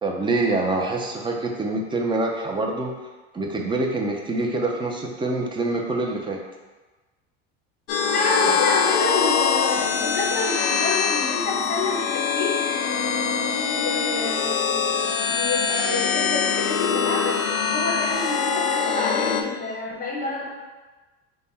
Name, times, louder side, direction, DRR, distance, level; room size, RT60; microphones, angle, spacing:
voice 1, 0.0-2.9 3.3-6.4, right 2 dB, 15° right, 1 dB, 0.5 m, -25 dB
sound 1, 7.9-19.4, left 6 dB, 90° left, 0.5 m, -23 dB
voice 2, 8.1-12.5 13.7-17.4 17.6-20.6, left 2 dB, 25° left, -2 dB, 1.0 m, -28 dB
3.4 x 2.3 x 4.0 m, 1.2 s
supercardioid pair, 100°, 32 cm